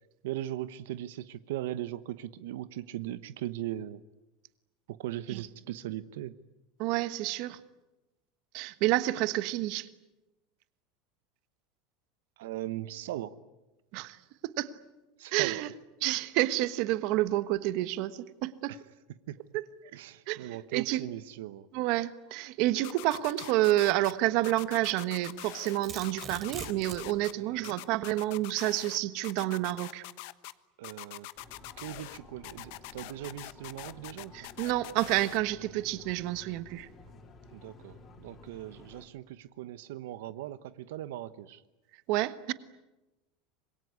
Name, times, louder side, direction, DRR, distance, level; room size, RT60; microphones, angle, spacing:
voice 1, 0.2-4.0 5.0-6.3 12.4-13.4 15.2-15.6 18.7-18.8 19.3-19.4 19.9-21.7 27.4-27.8 30.8-31.3 31.8-34.5 37.5-41.6, right 13 dB, 85° right, 14 dB, 1.0 m, -39 dB
voice 2, 6.8-7.6 8.5-9.9 13.9-14.2 14.4-14.7 15.3-15.7 16.0-18.7 19.5-19.6 20.3-21.0 21.7-30.0 34.3-36.9 42.1-42.5, right 16 dB, 50° right, 14 dB, 1.3 m, -29 dB
sound 1, 22.8-24.1 24.4-25.8 26.0-27.3 27.6-29.0 29.2-30.5 30.8-32.2 32.4-35.4, left 20 dB, 60° left, 1.1 m, -43 dB
Domestic sounds home sounds, 25.2-27.1, right 6 dB, 25° right, 3.4 m, -42 dB
sound 2, 31.4-39.1, left 3 dB, 25° left, 3.8 m, -53 dB
26.0 x 22.0 x 9.7 m, 1.0 s
supercardioid pair, 160°, 0 cm